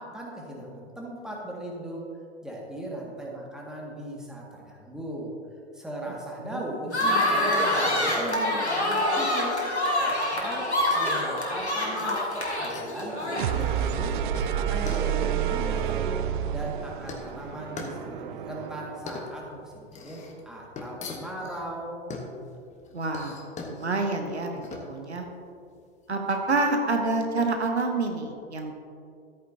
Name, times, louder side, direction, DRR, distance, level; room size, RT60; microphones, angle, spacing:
voice 1, 0.0-2.1 2.4-5.3 5.7-9.6 10.0-12.3 12.6-14.2 14.5-22.0, right 1 dB, ahead, -3 dB, 2.0 m, -38 dB
sound 1, 6.9-13.8, left 1 dB, 90° left, 1.8 m, -26 dB
sound 2, 7.9-26.7, left 3 dB, 20° left, 1.3 m, -43 dB
sound 3, 13.3-19.1, right 10 dB, 50° right, 0.6 m, -29 dB
voice 2, 22.9-24.6 24.9-25.3 26.1-28.7, right 3 dB, 80° right, 3 dB, 1.2 m, -27 dB
13.5 x 8.9 x 2.8 m, 2.4 s
figure-of-eight pair, 95°, 33 cm